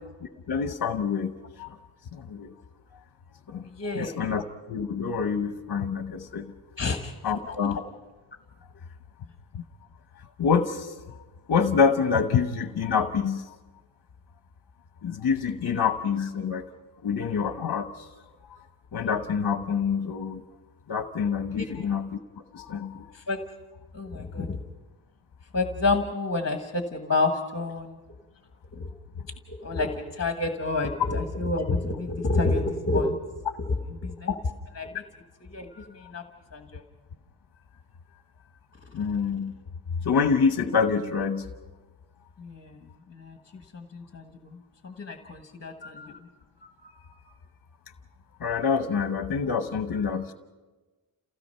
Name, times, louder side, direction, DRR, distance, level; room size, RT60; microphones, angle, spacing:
voice 1, 0.5-1.3 1.6-1.8 2.1-2.5 3.5-3.7 3.9-4.4 4.7-6.5 7.2-7.8 9.5-9.6 10.4-11.0 11.5-13.5 15.0-16.6 17.0-18.1 18.5-18.6 18.9-20.4 20.9-22.2 22.5-23.0 35.7-35.8 38.9-39.5 40.0-41.5 45.8-46.2 46.8-46.9 48.4-50.3, left 6 dB, 50° left, 8 dB, 0.9 m, -26 dB
voice 2, 3.6-4.3 6.8-7.1 7.4-7.8 21.5-21.9 23.1-23.4 23.9-24.6 25.5-28.0 28.7-28.9 29.5-33.2 33.6-34.4 34.7-35.0 35.5-36.2 36.5-36.8 42.4-42.8 43.1-44.6 44.8-46.1, left 3 dB, 30° left, 5 dB, 1.4 m, -29 dB
28.5 x 17.0 x 5.6 m, 1.2 s
wide cardioid pair, 130°, 50 cm